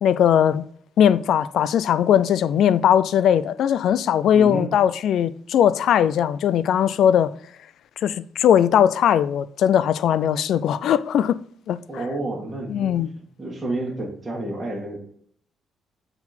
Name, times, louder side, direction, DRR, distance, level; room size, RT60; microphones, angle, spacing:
voice 1, 0.0-0.7 1.0-7.3 8.0-11.4 11.7-11.8 12.7-13.1, left 9 dB, 75° left, 0.3 m, -19 dB
voice 2, 4.3-4.7 11.9-12.9 13.4-15.0, right 2 dB, 15° right, 1.8 m, -29 dB
7.5 x 3.9 x 4.4 m
cardioid pair, 90°, 0 cm